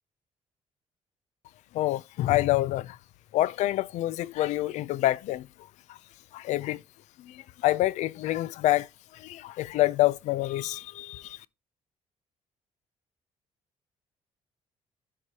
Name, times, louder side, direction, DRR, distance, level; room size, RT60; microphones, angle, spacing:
voice 1, 1.7-3.0 3.3-5.5 5.9-6.0 6.3-6.8 7.2-8.9 9.1-11.4, left 16 dB, 85° left, 0.4 m, -27 dB
12.0 x 4.8 x 2.7 m
cardioid pair, 155°, 12 cm